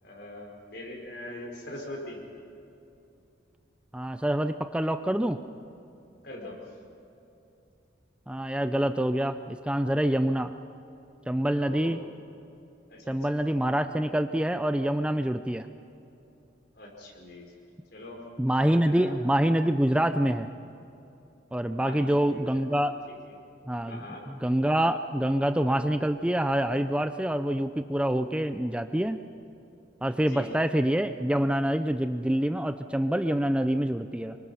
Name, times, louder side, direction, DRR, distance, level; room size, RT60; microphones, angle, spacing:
voice 1, 0.0-2.2 6.2-6.6 11.7-12.0 12.9-13.2 16.7-17.5 17.9-18.2 18.8-19.1 21.8-22.7 23.9-24.2 30.2-30.5, left 1 dB, 60° left, 0 dB, 5.0 m, -42 dB
voice 2, 3.9-5.4 8.3-10.5 11.3-12.0 13.1-15.7 18.4-20.5 21.5-22.9 23.7-29.2 30.0-34.4, right 1 dB, 5° right, 9 dB, 0.4 m, -26 dB
26.5 x 24.0 x 5.7 m, 2.8 s
head